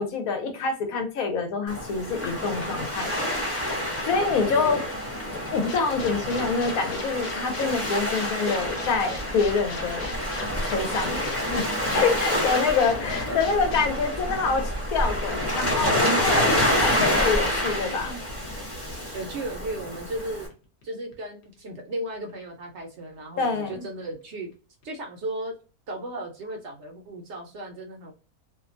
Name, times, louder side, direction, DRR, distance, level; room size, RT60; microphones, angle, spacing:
voice 1, 0.0-3.3 4.1-4.8 5.5-10.1 10.6-11.6 11.9-18.2 23.4-23.9, left 4 dB, 75° left, 5 dB, 1.1 m, -26 dB
Waves surf, 1.7-20.5, equal, 15° left, 0.7 m, -28 dB
voice 2, 4.5-5.0 12.8-12.9 13.3-13.4 19.1-20.5 20.8-24.5 24.8-25.5 25.9-28.1, right 1 dB, 60° right, 2 dB, 0.8 m, -35 dB
sound 1, 5.7-15.9 16.2-16.3 16.5-16.6 16.8-16.9 17.1-17.4 17.7-17.8 18.0-18.4 18.7-19.0 19.3-19.4 19.6-20.2 20.5-21.1 21.4-21.6 23.6-23.7 23.9-24.0 24.2-24.3 24.5-24.6 24.8-24.9, left 3 dB, 55° left, 0.9 m, -40 dB
2.7 x 2.2 x 2.5 m, 0.35 s
omnidirectional pair, 1.5 m